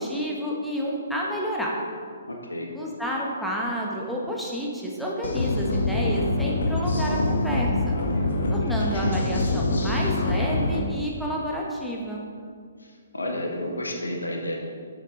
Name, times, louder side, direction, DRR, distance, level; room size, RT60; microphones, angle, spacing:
voice 1, 0.0-1.7 2.7-7.9 8.5-12.2, equal, ahead, -4 dB, 1.3 m, -30 dB
voice 2, 2.3-2.7 12.8-14.6, left 1 dB, 75° left, 1 dB, 1.6 m, -31 dB
sound 1, 5.2-10.8, left 2 dB, 60° left, 1.2 m, -25 dB
11.5 x 7.4 x 3.9 m, 2.1 s
figure-of-eight pair, 130°, 0 cm